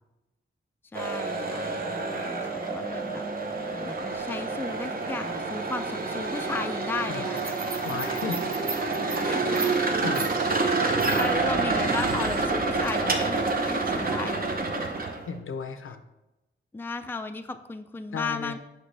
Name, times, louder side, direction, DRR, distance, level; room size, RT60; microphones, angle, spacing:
voice 1, 0.9-3.2 3.7-7.5 9.2-9.9 10.6-14.7 16.7-18.6, left 3 dB, 10° left, 8 dB, 0.3 m, -35 dB
sound 1, 1.0-15.3, right 3 dB, 45° right, 0.8 m, -28 dB
voice 2, 7.8-8.4 10.0-10.3 15.3-16.0 18.1-18.6, left 5 dB, 90° left, 8 dB, 0.6 m, -34 dB
sound 2, 10.6-13.9, right 6 dB, 75° right, 0.5 m, -45 dB
6.4 x 5.2 x 3.3 m, 0.97 s
wide cardioid pair, 120°, 21 cm